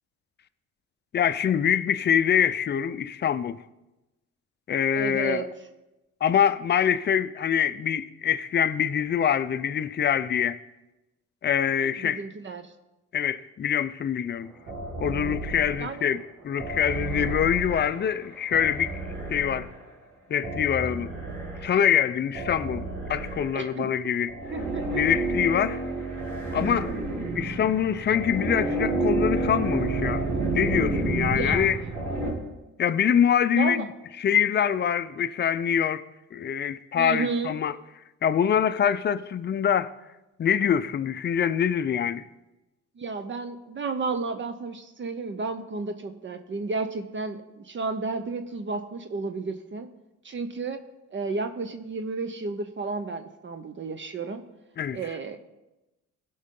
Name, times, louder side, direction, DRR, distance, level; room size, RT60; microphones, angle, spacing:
voice 1, 1.1-3.6 4.7-5.4 6.2-10.6 11.4-12.2 13.1-14.5 15.0-19.0 19.3-19.7 20.3-21.1 21.6-24.3 24.9-25.8 26.5-26.9 27.3-30.2 30.5-31.8 32.8-33.9 34.2-36.1 36.3-37.7 38.2-39.9 40.4-42.2 54.8-55.0, left 8 dB, 35° left, 0.5 m, -24 dB
voice 2, 4.9-5.5 12.0-12.7 15.8-16.1 23.5-23.9 24.5-25.0 31.3-32.0 33.5-33.9 37.0-37.5 43.0-49.9 50.2-50.8 51.1-54.4 54.9-55.4, right 4 dB, 40° right, 0.7 m, -32 dB
sound 1, 14.7-16.0 16.6-19.8 20.4-21.8 22.3-23.8 24.3-32.3, right 2 dB, 85° right, 3.4 m, -30 dB
15.5 x 5.5 x 3.8 m
cardioid pair, 90°, 30 cm